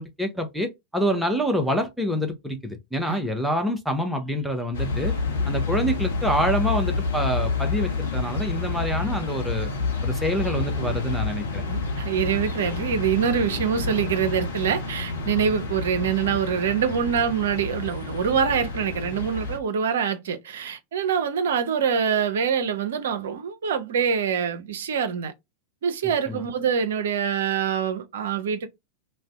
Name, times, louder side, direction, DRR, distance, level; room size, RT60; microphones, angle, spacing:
voice 1, 0.0-5.1 5.5-9.7 10.0-11.6 26.3-26.4, equal, ahead, 0.6 m, -26 dB
sound 1, 4.7-19.6, left 3 dB, 65° left, 0.8 m, -28 dB
voice 2, 11.7-25.3 25.8-28.7, right 7 dB, 60° right, 0.5 m, -25 dB
2.5 x 2.1 x 3.3 m
figure-of-eight pair, 90°, 0 cm